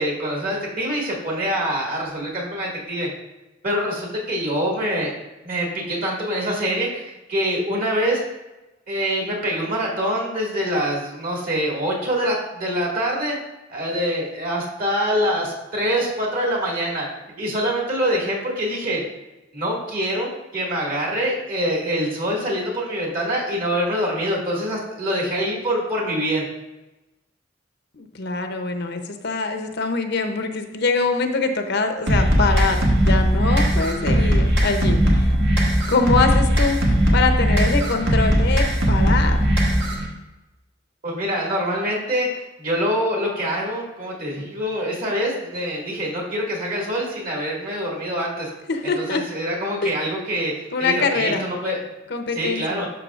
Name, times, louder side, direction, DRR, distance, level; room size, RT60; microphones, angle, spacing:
voice 1, 0.0-3.1 3.6-5.1 5.4-8.2 8.9-13.4 13.7-17.1 17.4-19.0 19.5-20.3 20.5-26.5 41.0-48.5 48.8-51.9 52.3-52.9, equal, 45° right, -3 dB, 2.1 m, -25 dB
voice 2, 27.9-35.3 35.9-39.5 48.7-49.2 49.8-49.9 50.7-51.5 52.1-52.8, left 4 dB, 60° left, 5 dB, 0.7 m, -24 dB
sound 1, 32.1-40.1, equal, 65° right, 1.5 m, -19 dB
12.0 x 5.6 x 2.4 m, 1.0 s
head